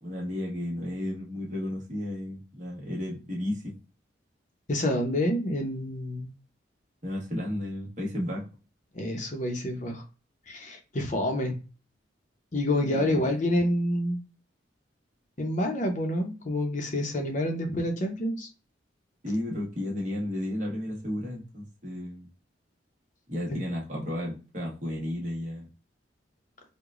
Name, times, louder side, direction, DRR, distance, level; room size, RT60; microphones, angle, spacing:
voice 1, 0.0-3.8 7.0-8.4 12.8-13.2 19.2-22.3 23.3-25.7, left 1 dB, 40° right, -3 dB, 1.3 m, -33 dB
voice 2, 4.7-6.3 8.9-10.0 10.5-11.6 12.5-14.2 15.4-18.5 23.5-23.6, left 1 dB, 40° left, 3 dB, 0.7 m, -28 dB
4.8 x 2.2 x 2.5 m, 0.33 s
head